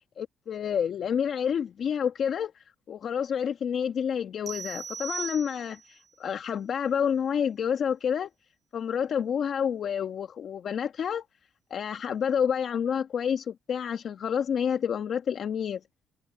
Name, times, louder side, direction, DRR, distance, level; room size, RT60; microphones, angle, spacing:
voice 1, 0.0-8.3 8.7-11.2 11.7-15.8, left 8 dB, 60° left, 1.4 m, -29 dB
sound 1, 4.5-6.0, right 6 dB, 45° right, 1.7 m, -38 dB
cardioid pair, 90°, 0 cm